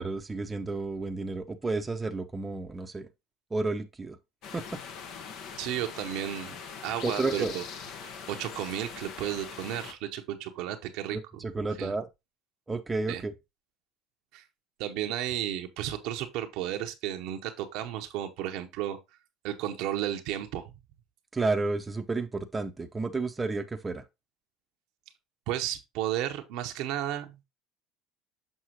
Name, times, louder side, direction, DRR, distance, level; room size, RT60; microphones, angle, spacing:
voice 1, 0.0-3.1 3.5-4.2 4.5-4.6 7.0-7.5 11.1-12.1 12.7-13.3 21.3-24.0, right 3 dB, 20° right, 0.7 m, -31 dB
sound 1, 4.4-9.9, left 6 dB, 65° left, 1.1 m, -42 dB
voice 2, 5.6-6.6 6.8-7.6 8.0-11.2 11.8-11.9 13.1-13.2 14.3-14.4 14.8-19.0 19.4-20.7 25.5-27.4, right 12 dB, 70° right, 0.8 m, -33 dB
6.4 x 5.5 x 2.9 m
hypercardioid pair, 80°, 0 cm